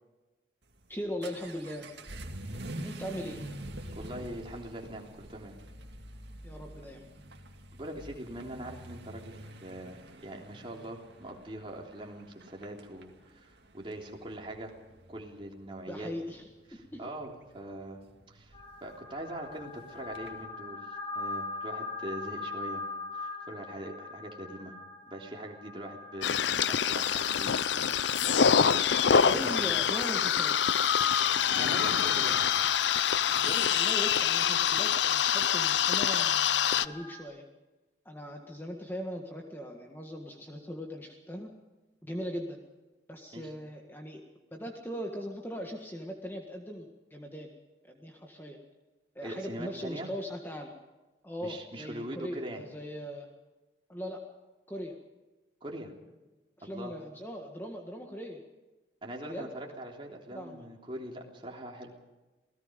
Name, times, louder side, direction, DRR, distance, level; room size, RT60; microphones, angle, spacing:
Vehicle / Accelerating revving vroom, 0.6-20.4, right 1 dB, 65° right, 2.2 m, -47 dB
voice 1, 0.9-1.9 2.8-3.4 6.4-7.0 15.9-16.5 16.9-17.0 29.2-30.7 33.3-37.5 38.0-41.5 42.0-42.6 43.1-44.2 44.5-47.5 47.8-48.6 49.1-50.7 51.2-53.3 53.9-54.2 54.7-54.9 56.6-58.4 59.3-59.5 60.3-60.7, equal, 10° left, 2 dB, 1.7 m, -39 dB
voice 2, 4.0-5.6 7.7-14.7 15.1-16.1 16.7-18.0 18.3-18.5 18.8-24.8 25.1-28.0 28.4-28.8 29.1-29.8 31.6-32.4 33.4-33.7 43.3-43.5 49.2-50.1 51.4-52.6 55.6-55.9 56.6-56.9 59.0-61.9, right 1 dB, 30° right, 0 dB, 3.5 m, -42 dB
sound 1, 18.5-37.2, left 3 dB, 30° left, 2.6 m, -43 dB
sound 2, 26.2-36.9, left 8 dB, 75° left, 0.6 m, -26 dB
27.5 x 18.0 x 5.3 m, 1.1 s
head